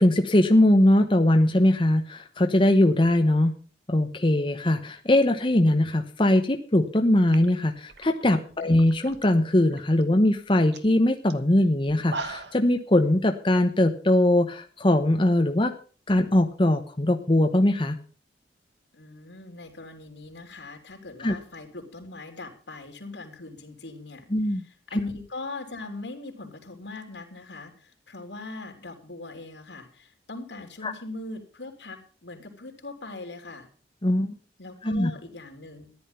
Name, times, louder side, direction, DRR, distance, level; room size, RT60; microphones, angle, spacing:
voice 1, 0.0-3.5 3.9-15.7 16.1-18.0 21.2-21.3 24.3-24.6 30.8-30.9 34.0-34.3 34.8-35.1, left 1 dB, 30° left, 5 dB, 1.0 m, -21 dB
sound 1, 6.8-7.0 7.3-9.2 9.6-10.0 10.4-10.5 10.7-10.9 11.3-11.4 11.9-12.7, right 3 dB, 75° right, 1.3 m, -39 dB
voice 2, 18.9-33.7 34.6-35.9, left 2 dB, 80° left, 4 dB, 3.5 m, -40 dB
14.0 x 11.0 x 5.6 m, 0.39 s
head